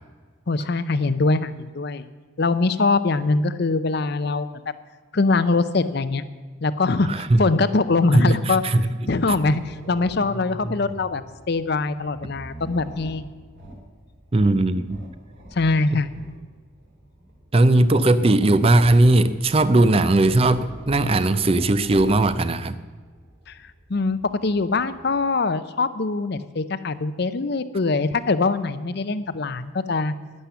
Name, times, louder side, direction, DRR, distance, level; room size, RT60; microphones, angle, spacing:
voice 1, 0.5-2.0 2.4-4.5 5.1-6.2 6.6-8.6 9.1-11.2 11.5-13.3 15.5-16.1 23.5-23.6 23.9-30.1, left 3 dB, 50° left, 13 dB, 0.6 m, -22 dB
voice 2, 7.0-7.4 8.1-8.8 14.3-15.0 17.5-22.8, right 2 dB, 25° right, 13 dB, 0.5 m, -18 dB
sound 1, 9.2-25.3, right 1 dB, 55° right, 2.9 m, -43 dB
12.0 x 10.0 x 7.0 m, 1.4 s
head